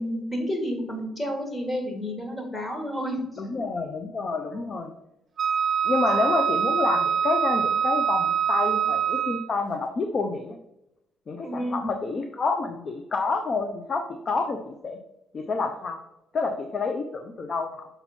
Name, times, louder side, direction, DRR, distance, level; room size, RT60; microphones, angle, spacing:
voice 1, 0.0-3.6 4.5-4.7 11.4-11.9, equal, 20° left, 2 dB, 2.0 m, -31 dB
voice 2, 3.4-4.9 5.8-10.6 11.3-15.0 15.3-16.0 16.3-17.9, left 4 dB, 45° left, 5 dB, 0.7 m, -28 dB
Wind instrument woodwind instrument, 5.4-9.6, right 8 dB, 50° right, 0.3 m, -24 dB
6.6 x 4.4 x 4.4 m, 0.86 s
cardioid pair, 90°, 0 cm